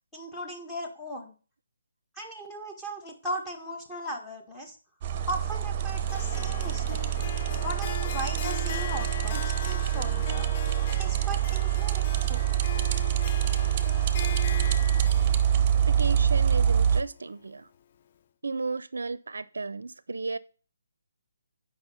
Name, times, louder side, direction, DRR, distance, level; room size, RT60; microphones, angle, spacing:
voice 1, 0.1-1.3 2.1-4.8 5.3-7.0 7.6-10.5 11.0-12.5, equal, 5° left, 1.6 m, -37 dB
sound 1, 5.0-17.0, right 10 dB, 30° right, 0.9 m, -26 dB
Harp, 6.1-17.3, left 8 dB, 40° left, 0.4 m, -40 dB
voice 2, 15.9-17.7 18.4-20.4, right 4 dB, 75° right, 0.5 m, -34 dB
8.9 x 5.5 x 5.5 m
figure-of-eight pair, 150°, 0 cm